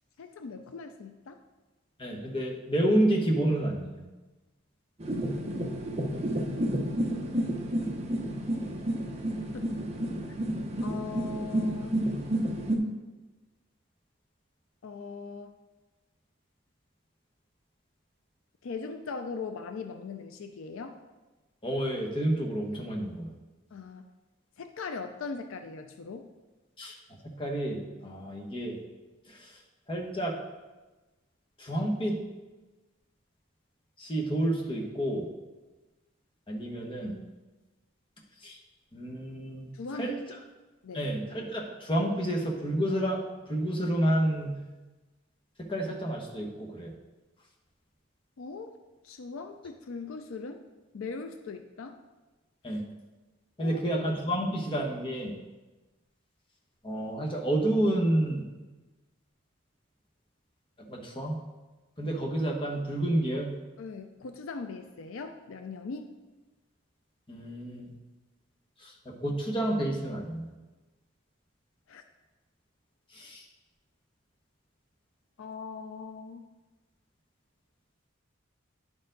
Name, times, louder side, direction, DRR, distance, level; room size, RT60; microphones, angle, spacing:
voice 1, 0.2-1.4 6.1-6.3 9.5-9.7 10.8-12.0 14.8-15.5 18.6-21.0 23.7-24.1 24.6-26.3 39.7-40.3 40.8-41.1 48.4-50.6 50.9-52.0 53.6-54.0 63.8-66.1 71.9-72.0 75.4-76.5, left 4 dB, 75° left, 7 dB, 0.4 m, -40 dB
voice 2, 2.0-4.0 21.6-23.3 26.8-26.9 27.2-28.8 29.3-29.5 29.9-30.4 31.6-32.2 34.0-35.3 36.5-37.1 38.4-38.6 38.9-40.2 40.9-43.2 43.5-44.6 45.6-46.9 52.6-52.8 53.6-55.3 56.8-58.4 60.9-61.4 62.0-63.6 67.3-67.9 68.8-70.5 73.1-73.4, right 1 dB, 25° left, -1 dB, 1.1 m, -29 dB
sound 1, 5.0-12.8, right 1 dB, 30° right, 0.8 m, -31 dB
10.5 x 4.4 x 3.9 m, 1.2 s
head